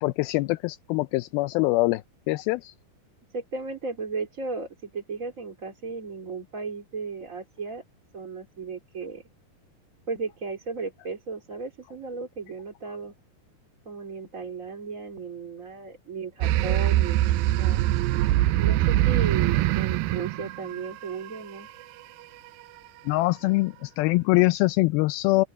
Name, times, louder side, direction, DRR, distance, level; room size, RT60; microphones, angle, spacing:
voice 1, 0.0-2.0 2.3-2.7 23.1-25.4, left 21 dB, 85° left, 2.4 m, -23 dB
voice 2, 3.3-7.8 8.1-9.2 10.1-13.1 13.8-17.8 18.6-21.7, right 4 dB, 25° right, 2.5 m, -35 dB
sound 1, 16.4-21.4, right 15 dB, 80° right, 2.4 m, -23 dB
open air
omnidirectional pair, 4.3 m